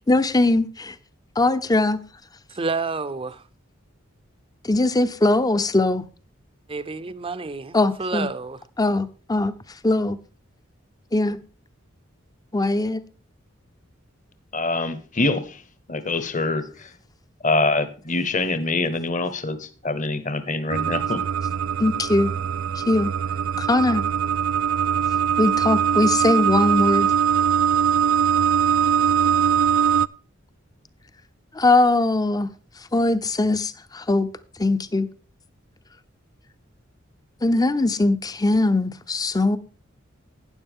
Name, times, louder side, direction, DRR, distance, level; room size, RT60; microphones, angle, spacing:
voice 1, 0.1-1.0 1.4-2.0 4.6-6.0 7.7-8.3 8.8-9.5 9.8-10.2 11.1-11.4 12.5-13.0 21.8-22.3 22.8-23.1 23.6-24.0 25.4-27.1 31.5-32.5 32.9-34.3 34.6-35.1 37.4-39.6, left 2 dB, 20° left, 0.7 m, -20 dB
voice 2, 2.5-3.4 6.7-8.6, right 4 dB, 25° right, 0.6 m, -29 dB
voice 3, 14.5-15.6 15.9-16.9 17.4-21.2, left 2 dB, 40° left, 1.1 m, -25 dB
sound 1, 20.7-30.1, right 8 dB, 75° right, 0.4 m, -21 dB
12.5 x 9.8 x 3.6 m
head